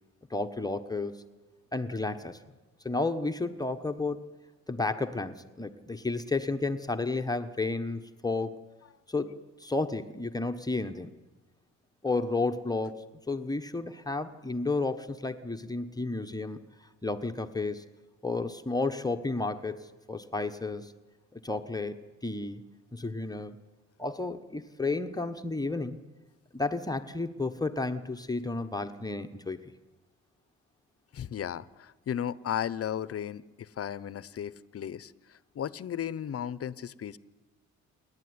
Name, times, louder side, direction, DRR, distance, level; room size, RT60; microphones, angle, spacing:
voice 1, 0.3-1.1 1.7-2.4 2.8-4.3 4.7-8.6 9.1-11.1 12.0-16.7 17.0-17.9 18.2-20.9 21.3-22.6 22.9-23.6 24.0-26.0 26.5-29.7, left 3 dB, 10° left, 6 dB, 1.2 m, -32 dB
voice 2, 31.1-37.2, left 9 dB, 50° left, 18 dB, 0.9 m, -35 dB
28.5 x 11.5 x 9.7 m, 1.2 s
cardioid pair, 90°, 30 cm